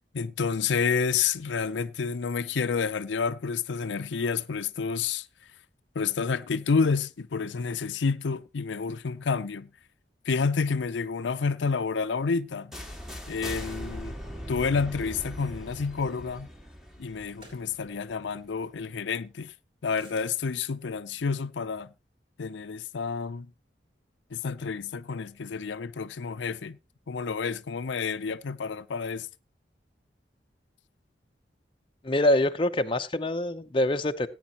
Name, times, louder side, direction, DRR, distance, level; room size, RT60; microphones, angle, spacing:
voice 1, 0.1-5.3 6.0-9.7 10.3-12.8 13.3-14.2 14.5-16.5 17.0-19.5 19.8-21.9 22.4-23.5 24.3-26.8 27.1-29.3, left 5 dB, 90° left, 0.5 m, -29 dB
sound 1, 12.7-18.5, equal, ahead, 1.9 m, -40 dB
sound 2, 17.3-17.7 19.9-20.3, right 1 dB, 30° right, 4.5 m, -51 dB
voice 2, 32.0-34.3, left 1 dB, 30° left, 0.7 m, -25 dB
17.5 x 9.3 x 2.9 m
head